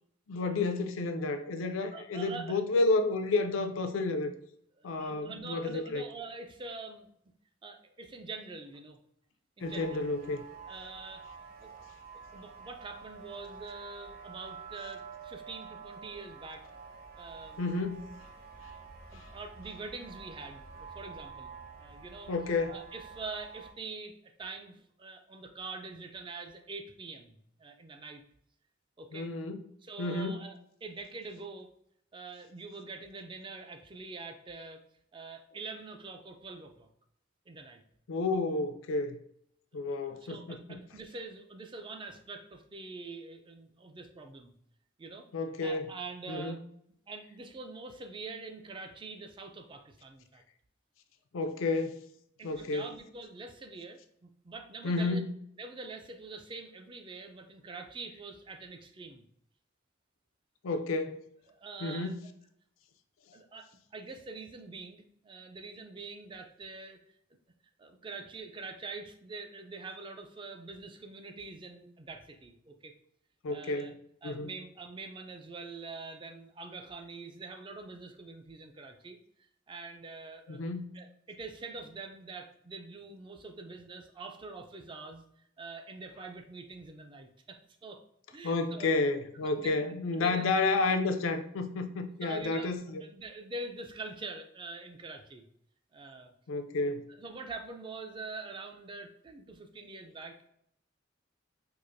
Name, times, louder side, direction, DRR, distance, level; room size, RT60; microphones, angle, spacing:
voice 1, 0.3-4.3 4.8-6.0 9.6-10.4 17.6-18.1 19.1-19.2 22.3-22.8 29.1-29.6 30.0-30.4 38.1-39.2 39.7-40.8 45.3-45.9 46.3-46.6 51.3-52.0 52.4-52.9 54.8-55.3 60.6-61.2 61.8-62.2 73.4-74.0 74.2-74.5 80.5-81.0 88.4-93.0 96.5-97.1, left 3 dB, 80° left, 0.4 m, -31 dB
voice 2, 1.6-2.6 4.8-7.1 7.6-9.0 9.6-10.0 10.7-11.2 11.6-11.7 12.3-16.6 17.2-17.6 19.1-22.3 22.7-28.2 29.0-29.3 29.8-31.7 32.1-34.8 35.1-36.9 37.5-37.8 39.9-44.5 45.0-45.3 45.6-46.6 47.1-50.4 52.4-55.2 55.6-59.2 61.5-62.1 63.3-67.0 67.8-72.9 73.5-73.9 74.2-80.6 80.9-85.2 85.6-88.0 88.3-88.9 89.3-90.4 92.2-95.4 95.9-96.3 97.2-100.5, right 3 dB, 25° right, 0.3 m, -45 dB
sound 1, 9.6-23.7, right 5 dB, 45° right, 0.9 m, -48 dB
4.7 x 2.5 x 2.5 m
head